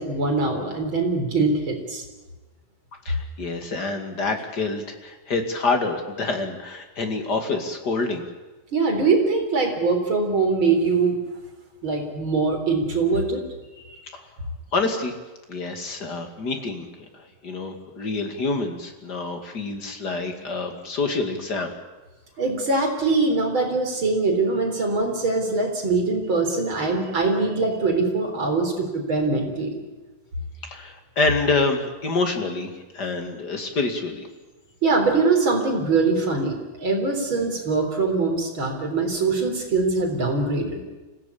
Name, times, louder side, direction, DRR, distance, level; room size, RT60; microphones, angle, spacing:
voice 1, 0.0-2.0 8.7-11.2 11.8-13.4 13.8-14.0 22.4-29.8 34.8-40.8, right 3 dB, 35° right, 2 dB, 4.4 m, -23 dB
voice 2, 3.0-8.2 14.1-14.2 14.7-15.1 15.5-16.9 17.1-21.7 30.6-34.3, left 3 dB, 30° left, 5 dB, 2.3 m, -27 dB
25.5 x 17.0 x 8.6 m, 1.2 s
omnidirectional pair, 4.3 m